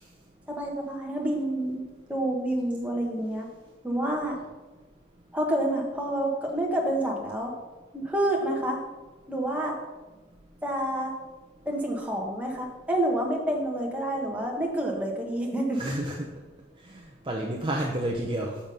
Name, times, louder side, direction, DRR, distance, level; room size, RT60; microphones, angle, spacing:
voice 1, 0.5-1.8 2.1-3.5 3.8-4.4 5.3-7.5 7.9-8.8 9.3-9.7 10.6-11.1 11.6-15.8, right 1 dB, 5° right, -1 dB, 1.2 m, -28 dB
voice 2, 15.7-16.3 16.9-18.6, right 1 dB, 25° right, -1 dB, 0.7 m, -30 dB
7.0 x 6.1 x 5.3 m, 1.2 s
head